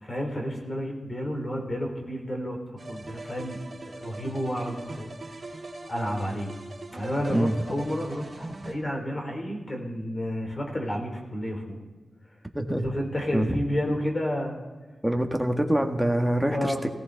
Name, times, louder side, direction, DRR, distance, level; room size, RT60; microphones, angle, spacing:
voice 1, 0.0-2.6 2.9-3.6 3.8-5.1 5.9-6.5 6.9-11.8 12.8-14.6 16.4-16.8, equal, 35° left, 2 dB, 3.5 m, -31 dB
sound 1, 2.8-8.7, right 2 dB, 50° right, 3.0 m, -41 dB
voice 2, 12.5-12.9 13.3-13.6 15.0-16.9, right 1 dB, 5° right, 3 dB, 1.6 m, -25 dB
18.5 x 17.0 x 4.0 m, 1.4 s
wide cardioid pair, 85°, 0 cm